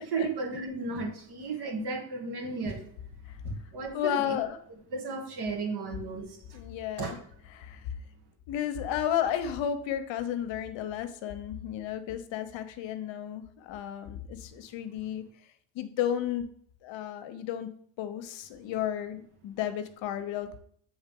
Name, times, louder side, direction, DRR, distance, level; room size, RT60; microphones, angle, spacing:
voice 1, 0.0-2.8 3.4-4.3 4.9-6.6 7.0-7.1, right 3 dB, 55° right, 3 dB, 1.5 m, -34 dB
voice 2, 3.9-4.6 6.5-7.2 7.5-7.8 8.5-15.2 15.7-16.5 16.8-17.7 18.0-20.6, left 10 dB, 70° left, 9 dB, 0.8 m, -33 dB
7.2 x 3.5 x 3.7 m, 0.62 s
supercardioid pair, 80°, 46 cm